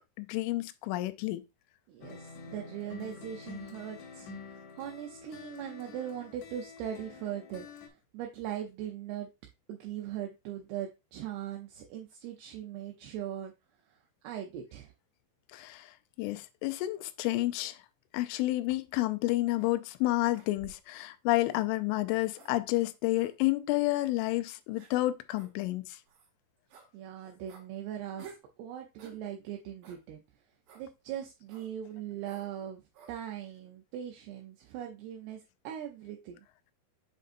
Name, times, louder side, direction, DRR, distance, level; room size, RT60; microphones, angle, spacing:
voice 1, 0.2-1.4 15.5-15.9 16.2-17.8 18.1-25.9, left 18 dB, 90° left, 3.1 m, -30 dB
voice 2, 1.9-4.3 4.8-7.7 8.1-9.3 9.7-13.5 14.2-14.9 26.9-30.2 30.8-32.8 33.1-36.4, right 10 dB, 80° right, 2.4 m, -40 dB
sound 1, 2.0-7.9, left 4 dB, 70° left, 3.0 m, -47 dB
sound 2, 18.9-19.1 19.6-19.7 20.3-20.9 21.5-21.7 22.3-22.5 23.2-23.3 24.0-24.1 24.8-24.9 25.3-25.5 26.1-26.3 26.7-26.9 27.5-27.7 28.2-28.5 29.0-29.2 29.8-30.0 30.7-30.9 31.5-31.7 32.2-32.5 32.9-33.1, right 6 dB, 65° right, 2.9 m, -53 dB
7.4 x 5.3 x 2.6 m
omnidirectional pair, 5.4 m